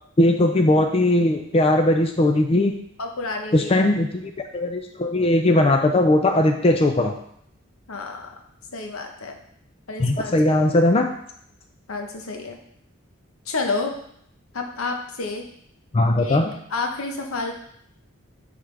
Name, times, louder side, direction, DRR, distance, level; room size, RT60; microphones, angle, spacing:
voice 1, 0.2-2.7 3.5-4.1 4.5-7.2 10.0-11.1 15.9-16.5, left 1 dB, 25° left, 5 dB, 0.4 m, -19 dB
voice 2, 3.0-3.9 7.9-8.4 8.7-9.4 9.9-10.4 11.9-12.6 13.5-13.9 14.5-15.4 16.2-16.4 16.7-17.5, left 3 dB, 85° left, 3 dB, 0.9 m, -29 dB
9.5 x 3.6 x 3.3 m, 0.69 s
head